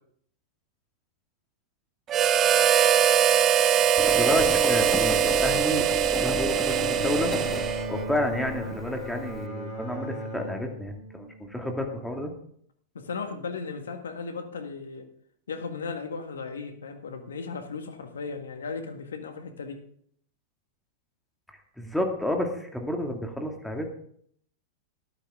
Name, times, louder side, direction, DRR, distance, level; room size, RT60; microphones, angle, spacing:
Harmonica, 2.1-8.1, right 9 dB, 30° right, 0.8 m, -22 dB
Engine, 4.0-9.5, left 6 dB, 20° left, 0.7 m, -35 dB
voice 1, 4.0-5.8 6.2-7.4 7.9-12.3 21.8-24.0, left 1 dB, 5° left, 2 dB, 2.3 m, -30 dB
Bowed string instrument, 6.6-12.0, equal, 50° left, 6.9 m, -37 dB
voice 2, 12.9-15.1 15.5-19.8, left 4 dB, 80° left, 6 dB, 1.7 m, -36 dB
14.0 x 11.5 x 3.7 m, 0.64 s
hypercardioid pair, 100°, 0 cm